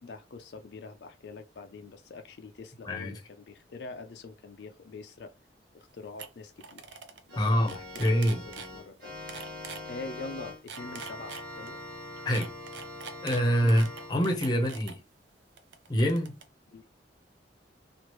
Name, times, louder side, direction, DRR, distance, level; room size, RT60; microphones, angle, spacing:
voice 1, 0.0-5.3 5.9-6.8 7.3-8.1 8.7-9.2 9.9-11.8 13.6-13.8 16.7-16.8, left 3 dB, 70° left, 0.4 m, -44 dB
sound 1, 5.8-5.9 6.2-6.3 6.6-7.2 7.5-8.7 9.3-9.8 10.5-11.7 12.3-14.9 15.6-16.4, right 6 dB, 90° right, 0.6 m, -43 dB
Organ, 7.3-14.1, left 1 dB, 60° right, 1.3 m, -43 dB
voice 2, 7.4-8.4 12.2-12.5 13.2-15.0 15.9-16.3, equal, 25° left, 0.7 m, -26 dB
3.1 x 2.4 x 3.0 m
head